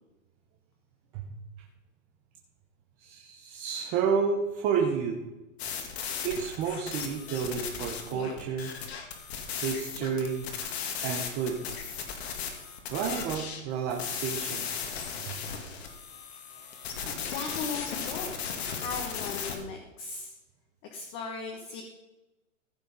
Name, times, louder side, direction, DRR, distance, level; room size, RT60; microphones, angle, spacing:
voice 1, 3.0-5.2 6.2-8.7 9.6-10.5 11.0-11.7 12.9-14.7 15.2-15.4, right 6 dB, 20° right, 1 dB, 0.8 m, -30 dB
sound 1, 5.6-13.6 13.9-19.6, left 6 dB, 50° left, 2.1 m, -36 dB
voice 2, 17.0-18.4 18.7-20.3 20.9-21.8, left 4 dB, 30° left, 2 dB, 1.4 m, -38 dB
15.0 x 6.6 x 5.2 m, 1.0 s
hypercardioid pair, 160°, 41 cm